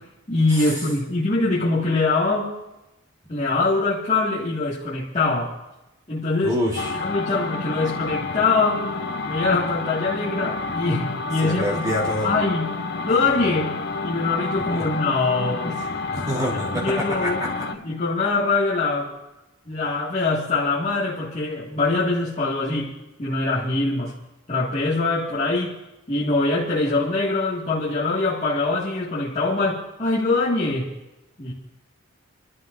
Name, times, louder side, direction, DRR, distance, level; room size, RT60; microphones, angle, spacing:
voice 1, 0.0-2.5 3.3-5.5 6.1-6.6 7.0-8.8 9.3-11.9 12.2-12.8 13.0-15.9 16.7-19.1 19.7-22.9 23.2-24.1 24.5-25.8 26.1-30.9 31.4-31.5, left 3 dB, 35° left, -9 dB, 1.9 m, -23 dB
voice 2, 6.4-6.9 11.5-12.3 14.7-14.8 16.1-17.3, equal, 20° right, -4 dB, 3.1 m, -26 dB
sound 1, 6.8-17.8, left 3 dB, 55° left, 0.7 m, -29 dB
29.0 x 12.5 x 2.6 m, 0.97 s
head